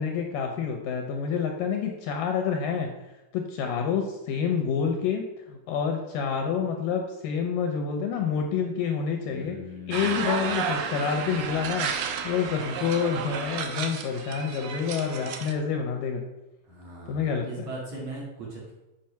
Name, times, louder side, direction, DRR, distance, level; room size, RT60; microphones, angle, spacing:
voice 1, 0.0-2.9 3.3-9.6 9.9-16.2 17.1-17.7, left 6 dB, 75° left, 4 dB, 2.2 m, -28 dB
voice 2, 9.3-10.5 16.7-18.7, right 1 dB, 50° right, -4 dB, 2.6 m, -39 dB
sound 1, 9.9-15.5, right 6 dB, 80° right, 1.7 m, -32 dB
7.6 x 6.1 x 5.7 m, 0.98 s
omnidirectional pair, 4.6 m